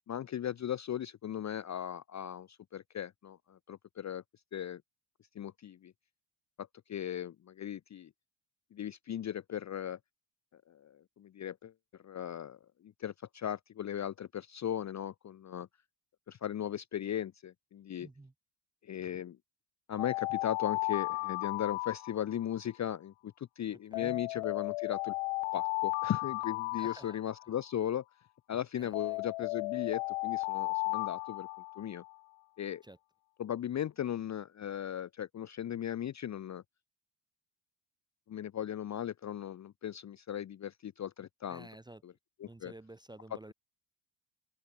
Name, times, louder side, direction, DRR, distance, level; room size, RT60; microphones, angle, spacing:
voice 1, 0.1-4.2 4.5-4.8 5.3-5.9 6.6-8.1 8.7-10.0 10.5-15.7 16.3-18.1 18.8-19.4 19.9-25.1 25.5-28.0 28.5-31.5 31.8-32.0 32.6-32.8 33.4-36.6 38.3-41.7 42.0-42.1 42.4-42.7, left 10 dB, 35° left, 0.7 m, -37 dB
voice 2, 18.0-18.3 23.9-24.2 26.7-27.2 28.8-29.2 32.8-33.0 41.5-42.0 42.4-43.5, right 1 dB, 10° right, 0.9 m, -51 dB
Alarm, 20.0-22.6 23.9-27.6 28.9-32.2, left 24 dB, 80° left, 0.6 m, -35 dB
cardioid pair, 120°, 50 cm